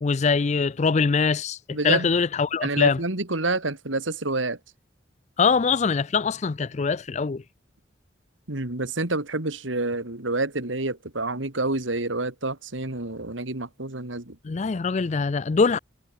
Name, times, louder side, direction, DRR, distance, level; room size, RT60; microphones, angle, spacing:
voice 1, 0.0-3.0 5.4-7.4 14.4-15.8, left 5 dB, 35° left, 0.4 m, -23 dB
voice 2, 1.7-2.1 2.6-4.6 8.5-14.4, right 2 dB, 80° right, 2.8 m, -28 dB
head